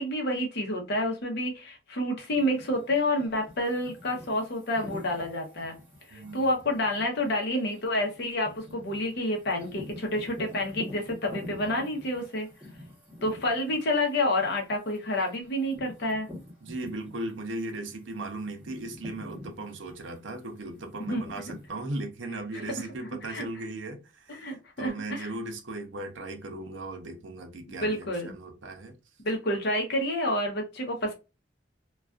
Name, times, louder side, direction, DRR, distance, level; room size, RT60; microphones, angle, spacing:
voice 1, 0.0-5.7 6.1-12.5 13.2-16.3 21.0-21.2 22.5-22.6 23.2-23.5 24.3-25.3 27.8-28.3 29.2-31.1, left 1 dB, 60° left, 0.7 m, -29 dB
sound 1, 2.4-17.5 17.9-21.7, left 1 dB, 10° right, 0.9 m, -47 dB
voice 2, 6.1-6.5 16.6-28.1 28.3-29.0, right 2 dB, 70° right, 0.6 m, -37 dB
2.4 x 2.3 x 2.3 m
head